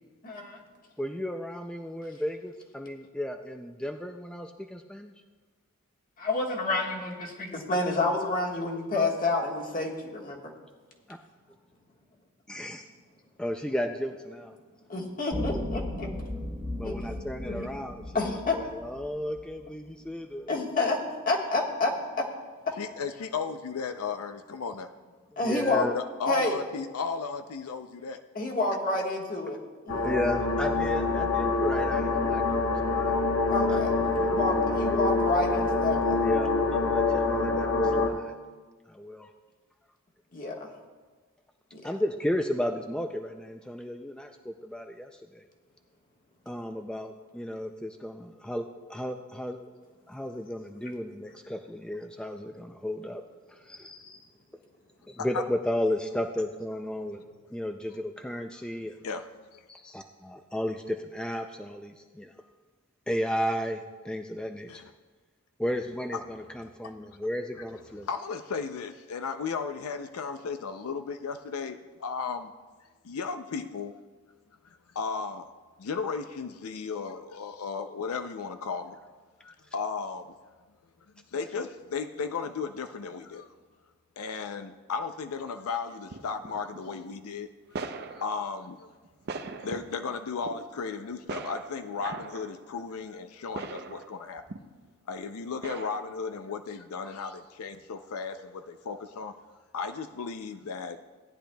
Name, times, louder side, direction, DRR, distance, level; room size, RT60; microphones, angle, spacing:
voice 1, 0.2-0.6 6.2-10.4 14.9-16.1 16.8-17.1 17.5-17.7 18.1-18.6 20.5-21.0 21.2-21.9 25.4-25.8 26.3-26.5 28.3-29.6 29.9-30.0 33.5-36.2 40.3-40.7 41.7-41.9 53.9-54.2, left 2 dB, 40° left, 0 dB, 1.5 m, -29 dB
voice 2, 1.0-5.1 11.1-11.2 12.5-12.8 13.4-14.6 16.7-20.5 25.4-25.9 30.0-33.2 33.5-33.9 34.3-34.5 36.2-38.4 38.9-39.3 41.8-45.4 46.5-49.6 50.1-53.2 53.5-54.0 55.1-57.2 57.5-59.0 59.7-62.3 63.1-64.8 65.6-68.1, equal, 5° left, 4 dB, 0.3 m, -34 dB
sound 1, 15.3-19.6, left 1 dB, 20° right, 1.2 m, -36 dB
voice 3, 22.8-24.9 25.8-28.2 55.2-55.4 59.0-59.2 59.5-59.6 64.7-64.9 68.0-72.5 73.0-73.9 74.9-75.5 75.8-79.0 79.4-80.3 81.3-83.5 84.2-87.5 88.2-88.9 89.6-94.4 95.1-99.3 99.7-101.0, left 5 dB, 80° left, 8 dB, 0.5 m, -35 dB
sound 2, 29.9-38.1, left 3 dB, 60° left, 1.0 m, -26 dB
sound 3, 86.1-87.0 87.7-88.4 89.0-90.1 90.4-90.6 91.2-92.6 93.5-94.9 95.6-96.4, right 4 dB, 50° right, 0.6 m, -40 dB
17.0 x 10.0 x 2.3 m, 1.4 s
head